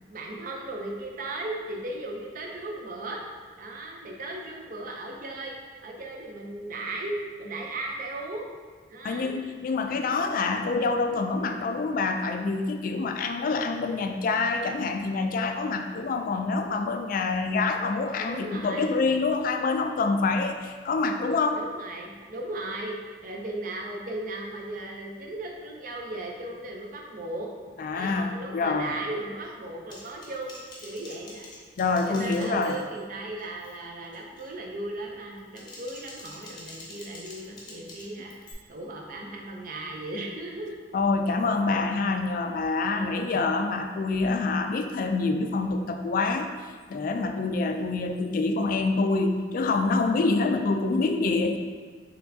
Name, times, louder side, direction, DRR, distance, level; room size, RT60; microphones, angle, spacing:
voice 1, 0.1-3.2 3.6-5.6 5.8-8.5 8.9-9.3 18.2-19.0 21.0-21.1 21.5-23.0 23.2-27.5 27.9-31.5 32.0-38.3 38.7-40.8 42.9-43.4, right 2 dB, 50° right, 0 dB, 0.6 m, -36 dB
voice 2, 9.0-21.6 27.8-29.0 31.8-32.8 40.9-46.5 46.9-51.6, left 3 dB, 50° left, 5 dB, 0.3 m, -26 dB
Typing, 29.9-33.1 33.4-33.8 34.1-34.5 35.3-38.5, left 1 dB, 25° left, 0.7 m, -46 dB
4.4 x 3.3 x 2.7 m, 1.5 s
head